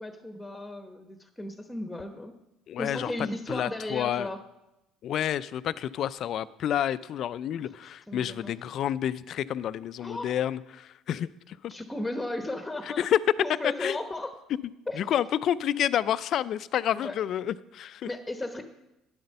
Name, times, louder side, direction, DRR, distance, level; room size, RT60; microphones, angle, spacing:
voice 1, 0.0-2.3 2.8-4.4 7.6-8.5 10.0-10.4 11.7-13.1 13.4-14.3 14.9-15.0 17.0-17.2 18.0-18.6, left 1 dB, 10° left, 7 dB, 1.1 m, -35 dB
voice 2, 2.7-3.1 3.5-4.3 5.0-11.7 13.0-13.2 13.6-14.0 15.0-18.1, left 10 dB, 60° left, 18 dB, 0.4 m, -29 dB
10.5 x 7.9 x 5.4 m, 0.93 s
hypercardioid pair, 70°, 0 cm